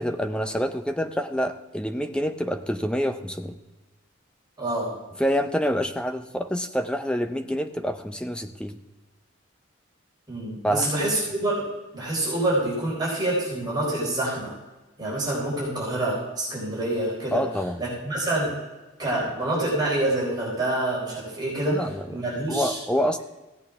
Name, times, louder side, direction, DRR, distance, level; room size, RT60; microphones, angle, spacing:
voice 1, 0.0-3.6 5.2-8.8 10.6-11.1 17.3-17.8 21.7-22.0 22.5-23.2, equal, 5° left, 7 dB, 0.6 m, -27 dB
voice 2, 4.6-4.9 10.3-14.5 15.0-17.4 17.8-18.6 19.0-22.8, right 1 dB, 20° right, -6 dB, 4.0 m, -27 dB
16.0 x 8.1 x 3.6 m, 1.2 s
head